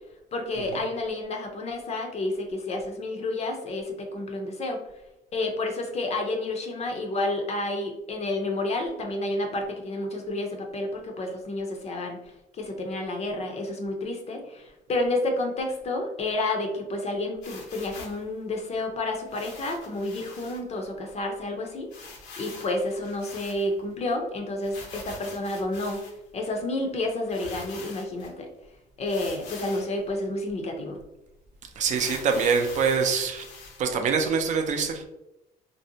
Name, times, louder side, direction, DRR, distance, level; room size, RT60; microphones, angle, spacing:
voice 1, 0.3-4.8 5.3-12.2 12.5-26.0 26.3-28.5 29.0-31.0, left 2 dB, 40° left, 2 dB, 0.5 m, -30 dB
sound 1, 17.4-18.2 19.3-20.6 21.1-21.2 21.4-21.5 21.9-23.9 24.6-26.3 26.9-27.0 27.3-28.3 29.0-30.0 30.5-30.6 30.9-31.1 31.8-33.8, left 3 dB, 85° left, 0.7 m, -44 dB
voice 2, 31.8-33.5 33.8-35.0, right 5 dB, 45° right, 4 dB, 0.5 m, -24 dB
2.5 x 2.1 x 2.7 m, 0.90 s
cardioid pair, 110°, 17 cm